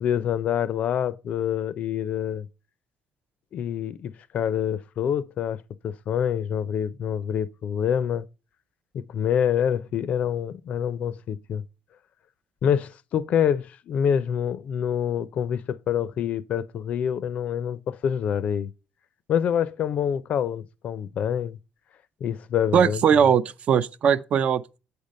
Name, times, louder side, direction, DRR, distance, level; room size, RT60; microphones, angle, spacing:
voice 1, 0.0-2.5 3.5-5.6 5.8-8.3 8.9-11.6 12.6-18.7 19.3-21.6 22.2-23.0, left 9 dB, 55° left, 0.5 m, -26 dB
voice 2, 22.7-24.8, right 7 dB, 50° right, 0.5 m, -20 dB
7.9 x 5.2 x 5.2 m
cardioid pair, 120°, 3 cm